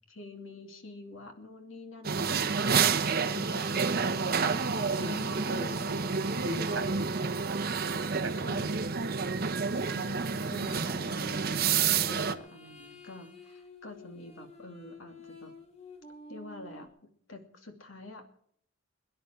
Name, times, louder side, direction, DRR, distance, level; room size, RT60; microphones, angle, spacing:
voice 1, 0.1-2.7 3.2-4.7 4.9-6.3 8.4-9.0 9.7-15.5 16.3-16.9 17.3-18.2, left 2 dB, 80° left, 5 dB, 2.6 m, -47 dB
sound 1, 2.0-12.3, right 5 dB, 50° right, 1.1 m, -29 dB
sound 2, 5.0-10.0 11.0-16.9, left 2 dB, 35° left, 2.4 m, -51 dB
voice 2, 6.4-7.6 8.2-8.7, right 1 dB, 70° right, 8 dB, 2.2 m, -38 dB
23.0 x 10.5 x 4.6 m, 0.63 s
head